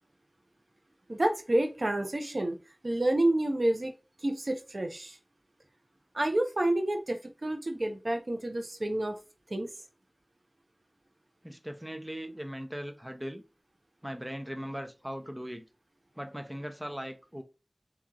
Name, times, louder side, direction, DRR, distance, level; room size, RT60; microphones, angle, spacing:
voice 1, 1.1-2.6 2.8-3.9 4.2-5.2 6.1-9.2 9.5-9.7, right 1 dB, 75° right, 0.9 m, -29 dB
voice 2, 11.4-13.4 14.0-15.6 16.2-17.4, equal, 15° right, 0.8 m, -39 dB
4.3 x 3.1 x 3.7 m
wide cardioid pair, 45°, 0 cm